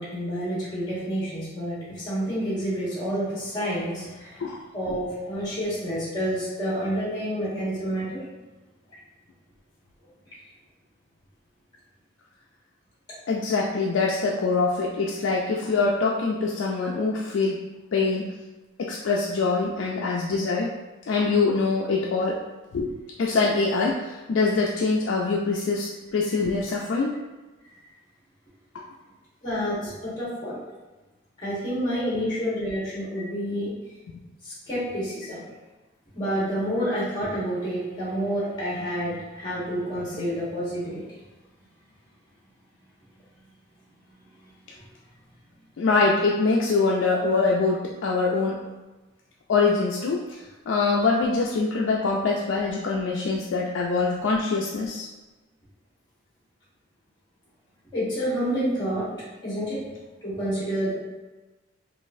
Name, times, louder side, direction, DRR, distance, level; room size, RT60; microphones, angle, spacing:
voice 1, 0.0-4.4 4.7-8.2 29.4-30.6 31.4-33.7 34.4-35.4 36.1-41.0 57.9-59.1 59.4-59.8 60.2-60.9, equal, 25° left, -9 dB, 1.3 m, -28 dB
voice 2, 13.3-17.6 17.9-18.3 18.8-20.7 21.1-22.4 22.7-22.9 23.2-27.1 45.8-48.6 49.5-50.4 50.7-55.1, left 3 dB, 75° left, -2 dB, 0.4 m, -24 dB
3.9 x 2.5 x 2.5 m, 1.1 s
head